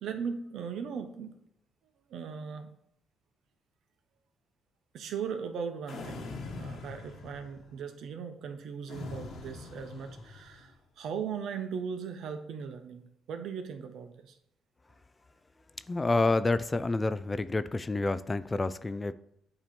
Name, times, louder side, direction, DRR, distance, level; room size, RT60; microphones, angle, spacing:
voice 1, 0.0-1.4 2.1-2.7 4.9-6.3 6.5-14.4, right 6 dB, 75° right, 0.9 m, -38 dB
sound 1, 5.9-7.7 8.9-10.7, left 4 dB, 70° left, 1.3 m, -43 dB
voice 2, 15.9-19.1, left 3 dB, 20° left, 0.3 m, -28 dB
8.7 x 3.0 x 4.3 m
cardioid pair, 90°, 0 cm